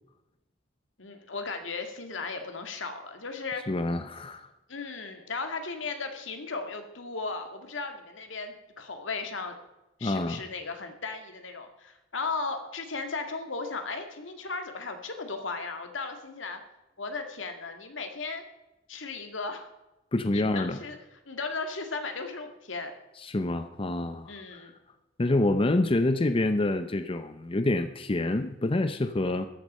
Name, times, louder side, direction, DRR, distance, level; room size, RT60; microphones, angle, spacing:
voice 1, 1.0-3.6 4.7-9.6 10.0-16.6 17.0-18.4 18.9-19.7 20.3-21.0 21.3-22.9 24.3-24.7, left 4 dB, 80° left, 6 dB, 2.0 m, -36 dB
voice 2, 3.7-4.5 10.0-10.4 20.1-20.8 23.2-24.6 25.2-29.5, left 2 dB, 30° left, 10 dB, 0.6 m, -27 dB
14.0 x 10.5 x 5.5 m, 0.96 s
head